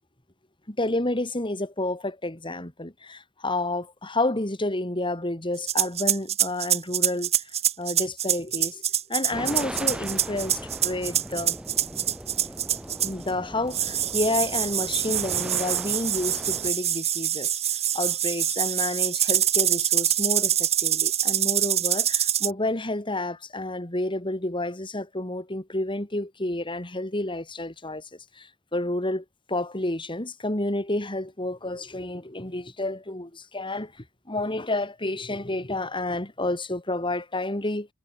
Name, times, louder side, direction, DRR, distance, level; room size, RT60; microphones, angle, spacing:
voice 1, 0.7-7.3 7.8-8.8 9.1-11.6 12.8-17.6 17.9-28.1 28.3-33.9 34.3-37.9, left 2 dB, 25° left, 3.4 m, -30 dB
sound 1, 5.6-13.3 13.7-22.5, right 11 dB, 35° right, 0.9 m, -25 dB
sound 2, 9.3-16.7, equal, 5° right, 7.4 m, -39 dB
head